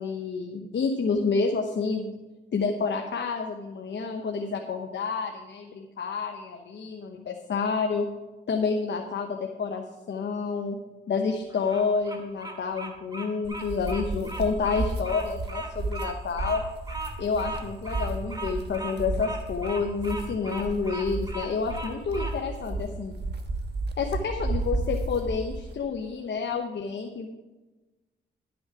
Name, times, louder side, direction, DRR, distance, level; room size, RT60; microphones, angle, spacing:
voice 1, 0.0-2.2 2.5-8.1 8.5-10.8 11.1-16.6 17.2-23.1 24.0-27.3, left 5 dB, 65° left, 3 dB, 1.0 m, -29 dB
Bird vocalization bird call bird song, 11.5-22.4, right 2 dB, 20° right, 2.2 m, -38 dB
sound 1, 13.4-25.8, right 2 dB, 60° right, 1.3 m, -33 dB
12.0 x 6.2 x 4.8 m, 1.1 s
cardioid pair, 55°, 20 cm